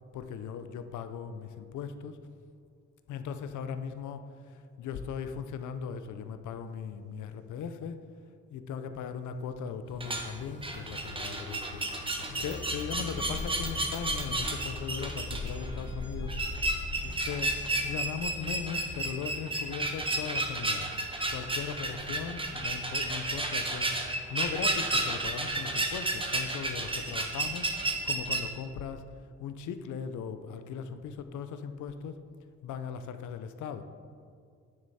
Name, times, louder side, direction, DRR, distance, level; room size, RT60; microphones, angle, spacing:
voice 1, 0.1-2.2 3.1-8.0 8.5-16.4 17.0-20.9 21.3-23.9 24.3-29.0 29.4-32.2 32.6-33.8, left 7 dB, 75° left, 10 dB, 0.7 m, -38 dB
sound 1, 9.9-28.4, right 2 dB, 15° right, 1.2 m, -32 dB
sound 2, 10.0-20.8, left 3 dB, 40° left, 0.8 m, -45 dB
9.6 x 7.1 x 4.2 m, 2.3 s
cardioid pair, 90°, 30 cm